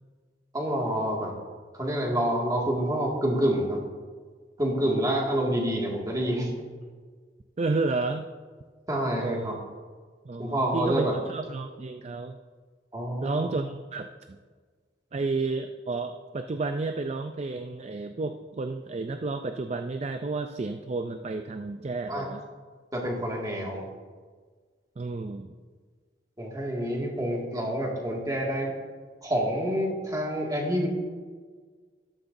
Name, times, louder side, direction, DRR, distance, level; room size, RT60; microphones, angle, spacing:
voice 1, 0.5-1.3 1.7-3.8 4.6-6.5 8.9-9.6 10.4-11.1 12.9-13.5 22.1-22.3 22.9-23.8 26.4-28.7 29.2-30.9, equal, 20° right, -2 dB, 2.0 m, -27 dB
voice 2, 7.6-8.3 9.2-9.6 10.2-12.4 13.2-14.4 15.1-22.4 25.0-25.5, right 3 dB, 35° right, 7 dB, 0.4 m, -31 dB
14.0 x 12.0 x 2.6 m, 1.5 s
head